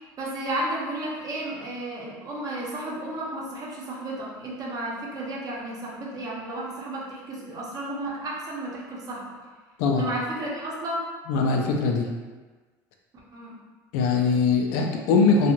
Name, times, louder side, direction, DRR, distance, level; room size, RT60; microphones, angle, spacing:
voice 1, 0.2-9.3 10.0-11.0 13.3-13.6, right 1 dB, 45° right, -4 dB, 0.8 m, -33 dB
voice 2, 11.3-12.1 13.9-15.5, left 4 dB, 80° left, 2 dB, 0.4 m, -21 dB
2.6 x 2.3 x 2.9 m, 1.3 s
supercardioid pair, 90°, 9 cm